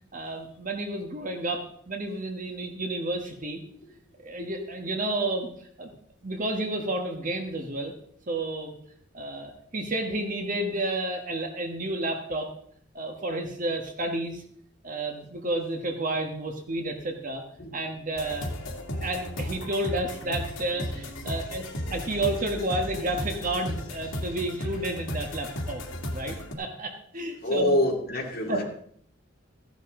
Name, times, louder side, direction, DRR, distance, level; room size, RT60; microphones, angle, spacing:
voice 1, 0.1-3.6 4.2-5.5 5.8-6.0 6.2-7.9 8.3-8.7 9.1-12.5 12.9-14.4 14.8-17.4 17.7-18.5 18.9-25.8 26.1-27.8 28.5-28.6, right 2 dB, 40° right, 3 dB, 1.6 m, -31 dB
sound 1, 18.2-26.5, left 1 dB, 85° left, 2.2 m, -35 dB
voice 2, 27.4-28.6, left 1 dB, 50° left, -3 dB, 2.6 m, -26 dB
15.0 x 11.0 x 3.8 m, 0.64 s
head